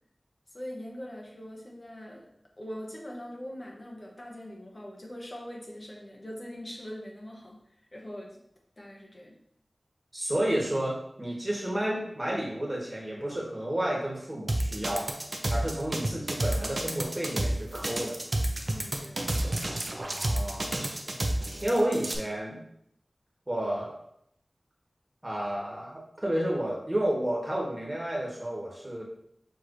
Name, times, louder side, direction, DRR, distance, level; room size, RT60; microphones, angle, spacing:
voice 1, 0.5-2.3 2.6-7.6 7.9-8.4 8.8-9.4 18.7-19.3, equal, 45° left, -1 dB, 0.9 m, -42 dB
voice 2, 10.1-15.1 15.5-18.2 20.0-20.7 21.1-21.2 21.6-22.6 23.5-24.0 25.2-29.0, right 1 dB, 30° right, -3 dB, 1.4 m, -31 dB
sound 1, 14.5-22.2, right 1 dB, 55° right, 0.6 m, -29 dB
6.3 x 2.9 x 2.6 m, 0.72 s
wide cardioid pair, 50°, 0 cm